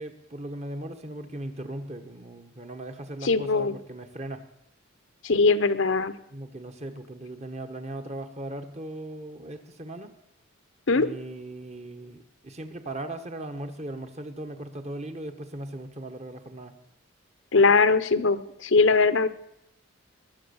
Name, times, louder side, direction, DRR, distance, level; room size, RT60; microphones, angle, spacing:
voice 1, 0.0-4.4 6.3-10.1 10.9-16.8, right 1 dB, 30° right, 7 dB, 1.3 m, -38 dB
voice 2, 3.2-3.8 5.2-6.1 10.9-11.1 17.5-19.3, left 4 dB, 65° left, 13 dB, 0.8 m, -21 dB
21.0 x 7.4 x 7.1 m, 0.83 s
head